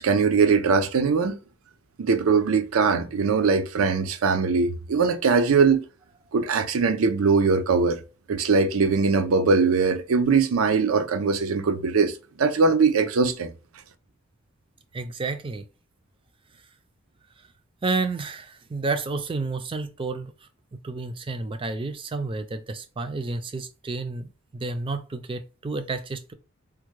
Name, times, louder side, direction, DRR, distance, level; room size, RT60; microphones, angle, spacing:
voice 1, 0.0-1.4 2.0-5.8 6.3-8.0 8.3-12.1 12.4-13.5, right 5 dB, 90° right, 0.5 m, -21 dB
voice 2, 14.9-15.6 17.8-20.3 20.8-26.3, right 3 dB, 25° right, 0.3 m, -30 dB
3.5 x 2.1 x 3.0 m
head